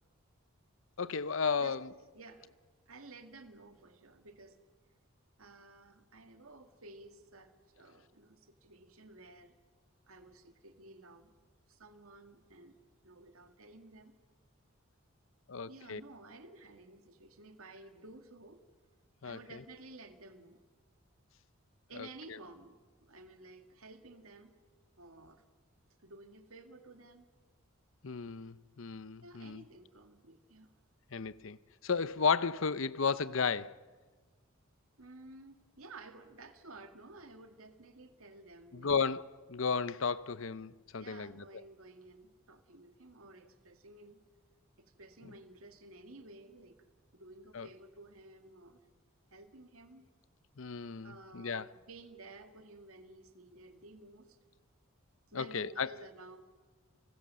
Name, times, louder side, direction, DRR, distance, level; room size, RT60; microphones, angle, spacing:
voice 1, 1.0-1.9 15.5-16.0 19.2-19.4 22.0-22.4 28.0-29.6 31.1-31.6 31.8-33.8 38.7-39.2 39.5-41.4 47.5-47.7 50.6-51.7 55.3-55.9, left 5 dB, 65° left, 0.7 m, -33 dB
voice 2, 2.1-2.5 2.9-4.6 5.4-9.5 10.1-11.3 11.7-12.8 13.0-14.1 15.7-18.6 19.2-20.6 21.9-22.8 23.0-24.6 25.0-25.4 26.0-27.3 29.2-30.7 32.0-32.2 35.0-39.0 41.0-44.2 44.8-46.9 47.1-48.8 49.3-50.1 51.0-54.4 55.3-56.4, right 2 dB, 80° right, 2.1 m, -54 dB
30.0 x 20.0 x 7.6 m
head